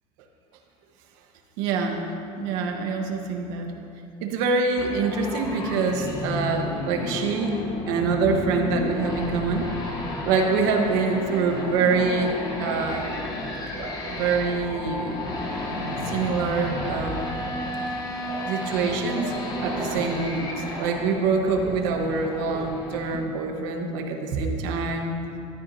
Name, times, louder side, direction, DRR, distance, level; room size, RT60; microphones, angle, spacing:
voice 1, 1.6-2.1 2.4-3.7 4.2-7.6 7.9-9.7 10.2-12.3 12.6-13.1 14.1-15.2 15.7-17.4 18.4-19.3 19.6-25.2, right 4 dB, 75° right, 3 dB, 1.3 m, -25 dB
sound 1, 4.8-23.2, left 2 dB, 30° left, 1.0 m, -32 dB
sound 2, 11.3-22.7, right 2 dB, 25° right, 2.0 m, -40 dB
13.0 x 13.0 x 2.8 m, 2.7 s
cardioid pair, 170°, 14 cm